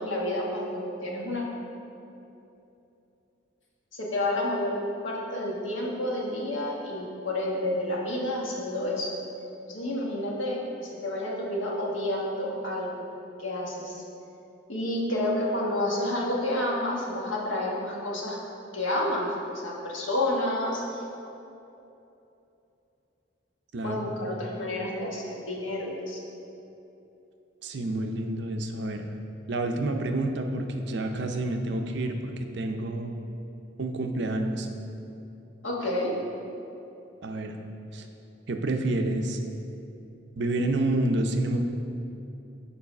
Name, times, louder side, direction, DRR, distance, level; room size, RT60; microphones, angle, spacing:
voice 1, 0.0-1.4 3.9-4.8 5.0-9.2 9.7-13.1 13.4-14.0 14.7-18.4 18.7-21.0 23.8-26.2 35.6-36.2, left 1 dB, 75° left, -3 dB, 1.3 m, -30 dB
voice 2, 23.7-24.1 27.6-29.1 29.5-33.1 33.8-34.7 37.2-37.6 37.9-38.1 38.5-39.4 40.4-41.6, right 2 dB, 60° right, 4 dB, 0.6 m, -29 dB
7.2 x 4.7 x 5.3 m, 2.9 s
head